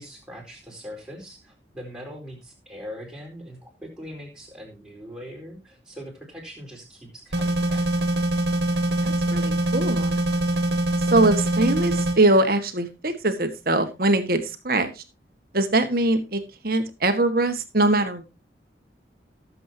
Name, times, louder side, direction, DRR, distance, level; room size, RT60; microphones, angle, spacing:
voice 1, 0.0-7.9, equal, 5° right, -2 dB, 4.3 m, -41 dB
sound 1, 7.3-12.2, right 1 dB, 75° right, 2.0 m, -23 dB
voice 2, 9.0-10.2 11.1-15.0 15.5-18.2, right 2 dB, 50° right, 8 dB, 1.6 m, -22 dB
19.0 x 7.7 x 2.8 m, 0.24 s
head